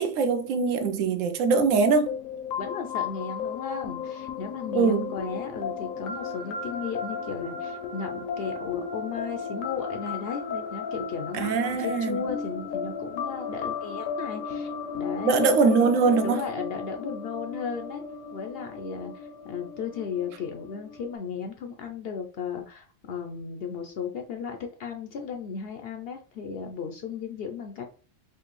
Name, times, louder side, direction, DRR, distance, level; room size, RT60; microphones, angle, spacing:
voice 1, 0.0-2.1 4.7-5.1 11.3-12.2 15.2-16.4, right 4 dB, 75° right, 0.9 m, -22 dB
sound 1, 1.6-21.1, left 5 dB, 80° left, 1.0 m, -35 dB
voice 2, 2.6-15.5 16.2-18.0 18.3-27.8, left 6 dB, 65° left, 0.6 m, -35 dB
4.5 x 2.5 x 3.0 m
omnidirectional pair, 1.4 m